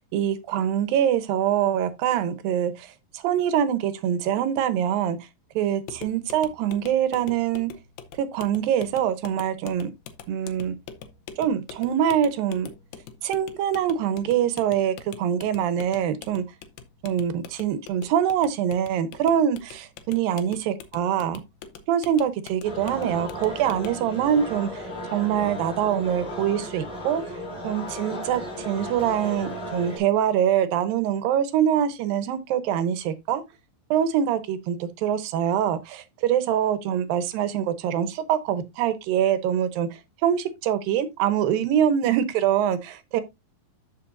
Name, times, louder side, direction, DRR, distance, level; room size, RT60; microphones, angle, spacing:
voice 1, 0.1-5.2 5.6-7.7 8.2-9.9 10.3-10.7 11.4-12.7 13.2-16.4 17.0-21.4 21.9-27.2 27.6-33.4 33.9-43.2, right 9 dB, 80° right, 2.6 m, -24 dB
sound 1, 5.8-24.1, left 7 dB, 85° left, 2.8 m, -44 dB
sound 2, 22.6-30.0, equal, 10° left, 4.0 m, -35 dB
13.5 x 5.6 x 2.5 m
omnidirectional pair, 4.1 m